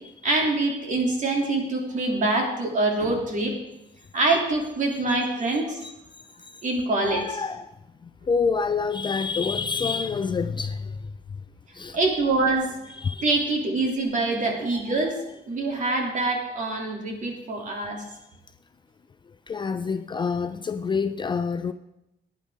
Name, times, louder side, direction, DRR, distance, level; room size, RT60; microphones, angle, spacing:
voice 1, 0.2-3.5 4.1-5.8 6.6-7.2 11.9-12.7 13.2-15.1 15.5-18.0, right 2 dB, 45° right, 1 dB, 2.9 m, -25 dB
voice 2, 5.4-5.9 6.5-6.6 7.0-7.8 8.0-11.1 11.7-12.0 12.9-13.4 15.7-15.8 19.5-21.7, left 5 dB, 25° left, 10 dB, 0.4 m, -28 dB
15.5 x 9.8 x 3.7 m, 0.88 s
cardioid pair, 120°, 18 cm